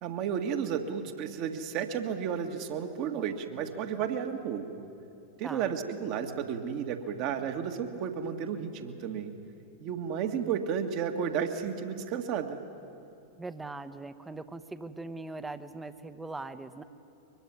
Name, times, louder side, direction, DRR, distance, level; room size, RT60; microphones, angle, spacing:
voice 1, 0.0-4.7 5.4-9.3 9.8-12.6, right 7 dB, 45° right, 6 dB, 1.8 m, -32 dB
voice 2, 5.4-5.8 13.4-16.8, right 2 dB, 10° right, 12 dB, 1.0 m, -41 dB
23.0 x 22.5 x 9.6 m, 2.9 s
figure-of-eight pair, 90°, 0 cm